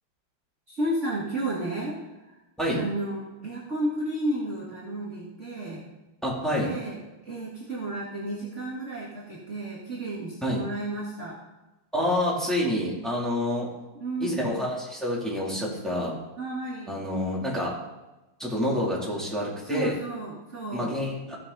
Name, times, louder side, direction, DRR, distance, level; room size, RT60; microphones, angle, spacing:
voice 1, 0.7-2.0 2.3-2.4 2.8-5.8 6.6-11.4 13.9-14.8 16.4-17.0 19.6-21.0, right 1 dB, 35° right, -6 dB, 2.3 m, -32 dB
voice 2, 6.2-6.7 10.4-10.6 11.9-13.7 14.2-16.1 16.9-17.7 18.4-19.9 20.7-21.4, left 1 dB, ahead, -5 dB, 3.1 m, -27 dB
16.0 x 6.6 x 4.1 m, 1.0 s
omnidirectional pair, 2.2 m